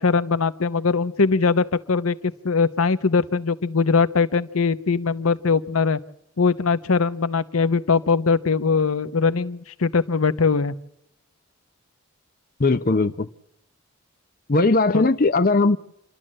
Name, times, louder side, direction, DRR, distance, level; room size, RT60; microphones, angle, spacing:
voice 1, 0.0-6.0 6.4-10.7 14.9-15.0, left 4 dB, 90° left, 0.9 m, -21 dB
voice 2, 12.6-13.3 14.5-15.8, left 3 dB, 40° left, 0.7 m, -19 dB
27.5 x 12.5 x 7.5 m
head